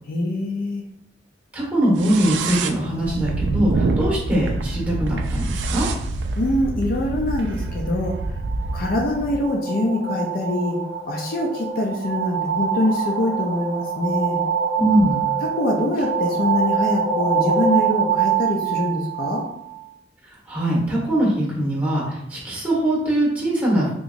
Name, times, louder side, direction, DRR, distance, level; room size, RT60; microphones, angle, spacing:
voice 1, 0.1-0.8 6.4-8.1 8.7-10.8 11.1-14.4 15.4-19.4, left 1 dB, 55° left, 0 dB, 0.5 m, -24 dB
voice 2, 1.5-5.9 14.8-15.2 20.5-23.9, right 1 dB, 10° right, -4 dB, 1.3 m, -21 dB
sound 1, 1.9-9.5, right 3 dB, 70° right, 0.3 m, -26 dB
sound 2, 8.2-19.8, right 6 dB, 25° left, 1.4 m, -25 dB
3.6 x 2.9 x 2.5 m, 0.78 s
head